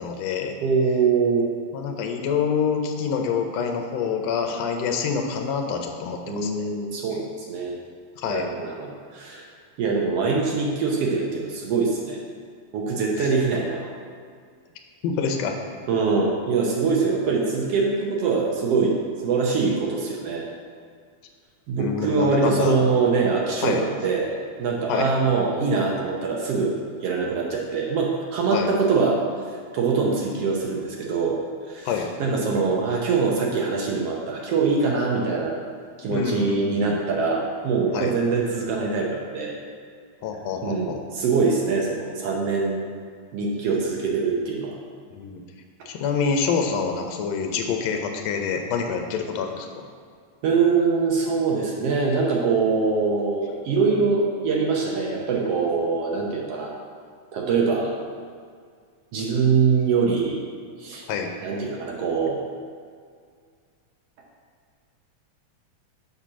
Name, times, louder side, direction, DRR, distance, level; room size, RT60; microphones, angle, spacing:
voice 1, 0.0-0.5 1.7-6.6 8.2-8.5 13.2-13.3 15.0-15.6 21.8-22.8 23.6-23.8 24.9-25.1 28.5-28.7 31.9-32.1 36.0-36.9 37.9-38.1 40.2-41.0 45.1-45.4 45.9-49.9 61.1-61.3, left 6 dB, 75° left, 3 dB, 1.8 m, -26 dB
voice 2, 0.6-1.5 6.3-7.7 8.3-9.5 9.8-12.2 12.7-13.9 15.9-19.0 19.2-20.4 21.7-24.3 24.6-29.2 29.7-31.4 31.7-35.6 36.0-39.6 40.6-42.8 43.3-44.8 50.4-56.7 57.3-57.9 59.1-60.4 60.8-61.0 61.4-62.4, right 4 dB, 70° right, -2 dB, 1.7 m, -23 dB
6.8 x 4.3 x 6.2 m, 2.1 s
omnidirectional pair, 3.4 m